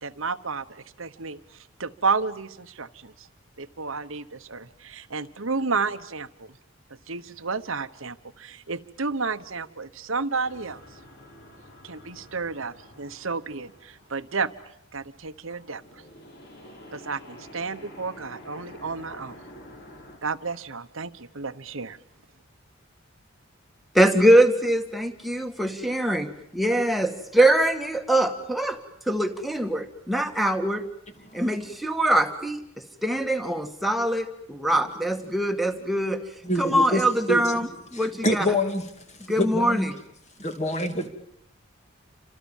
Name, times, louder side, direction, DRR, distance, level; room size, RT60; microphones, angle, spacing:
voice 1, 0.0-1.4 1.8-3.3 3.6-6.6 7.1-10.8 11.8-14.5 14.9-16.0 16.9-19.4 20.2-22.0, right 4 dB, 70° right, 10 dB, 1.2 m, -31 dB
sound 1, 10.4-15.2 15.5-20.2, left 1 dB, 50° left, 6.3 m, -48 dB
voice 2, 23.9-28.8 29.1-30.8 31.3-32.6 33.0-36.2 36.6-38.4 39.3-39.9, right 1 dB, ahead, 4 dB, 2.0 m, -23 dB
voice 3, 31.2-31.7 36.4-37.6 37.9-38.9 39.2-39.9 40.4-41.1, left 1 dB, 30° left, 6 dB, 2.7 m, -27 dB
29.0 x 26.0 x 7.3 m, 0.74 s
head